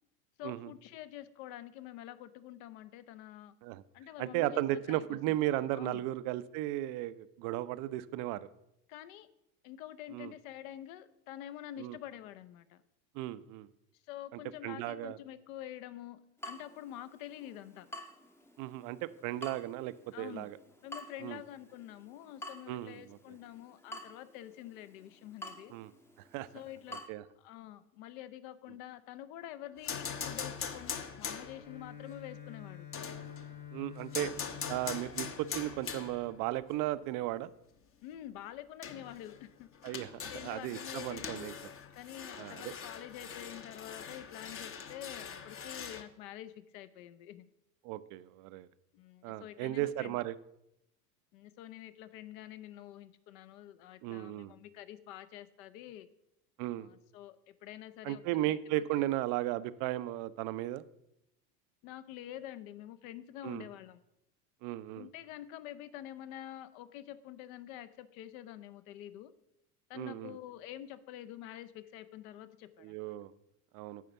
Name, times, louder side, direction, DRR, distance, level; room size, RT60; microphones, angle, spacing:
voice 1, 0.4-3.5 3.9-5.4 5.7-6.0 8.9-9.3 9.6-12.8 14.1-17.9 20.1-20.5 20.8-25.7 26.5-27.1 27.4-32.9 38.0-39.7 40.2-41.5 41.9-47.5 48.9-50.2 51.3-56.1 56.7-58.6 59.0-59.1 61.8-64.0 64.9-69.3 69.9-73.0, left 12 dB, 55° left, 14 dB, 0.8 m, -47 dB
voice 2, 4.2-8.5 10.1-10.3 11.8-12.0 13.1-13.7 14.3-15.2 18.6-20.6 21.2-21.4 22.7-23.2 25.7-25.9 26.3-26.5 27.1-27.2 33.7-34.3 34.7-37.5 39.8-40.1 40.4-41.5 42.4-42.7 47.8-48.7 49.2-50.3 54.0-54.5 56.6-56.9 58.0-60.8 63.4-63.7 64.6-65.1 69.9-70.3 72.8-73.3 73.7-74.0, right 15 dB, 40° right, 15 dB, 0.5 m, -35 dB
Water tap faucet / Drip, 16.4-27.1, equal, 5° left, 0.7 m, -50 dB
sound 1, 29.8-31.8 32.9-33.6 34.1-36.4 36.8-36.9 38.1-38.2 38.8-46.0, left 6 dB, 25° left, 0.9 m, -42 dB
Bowed string instrument, 31.5-36.3, left 9 dB, 80° left, 1.9 m, -49 dB
9.3 x 5.0 x 6.9 m, 0.83 s
hypercardioid pair, 90°, 49 cm